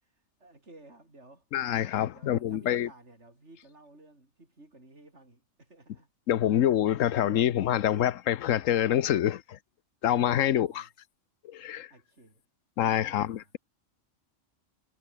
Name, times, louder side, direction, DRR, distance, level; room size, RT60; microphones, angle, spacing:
voice 1, 0.0-1.5 2.1-6.1 10.4-10.9 11.9-12.4 13.0-13.5, right 2 dB, 60° right, 5.8 m, -55 dB
voice 2, 1.5-2.9 6.3-9.6 10.0-10.9 11.4-11.9 12.8-13.6, left 11 dB, 80° left, 1.2 m, -26 dB
omnidirectional pair, 1.3 m